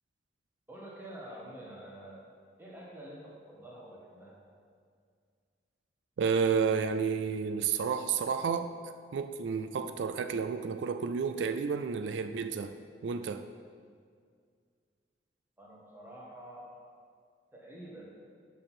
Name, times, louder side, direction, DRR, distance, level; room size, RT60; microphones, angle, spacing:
voice 1, 0.7-2.2 2.6-4.4 15.6-16.8 17.5-18.1, right 1 dB, 10° right, -5 dB, 1.6 m, -47 dB
voice 2, 6.2-12.7 13.0-13.5, right 6 dB, 90° right, 9 dB, 0.4 m, -31 dB
6.4 x 6.3 x 6.0 m, 2.1 s
head